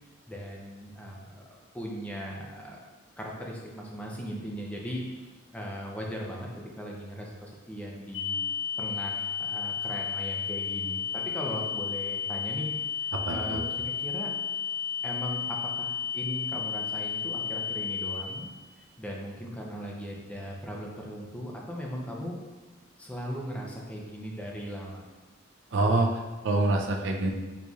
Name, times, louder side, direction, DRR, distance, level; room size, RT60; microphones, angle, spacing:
voice 1, 0.3-1.4 1.7-2.8 3.2-8.4 8.8-12.7 13.3-13.6 14.0-14.3 15.0-18.5 18.8-22.4 23.0-25.0, equal, 5° left, -2 dB, 0.5 m, -38 dB
sound 1, 8.1-18.1, left 7 dB, 90° left, 1.1 m, -32 dB
voice 2, 13.2-13.6 25.7-27.3, right 2 dB, 75° right, 2 dB, 0.4 m, -26 dB
4.0 x 3.1 x 2.3 m, 1.2 s
head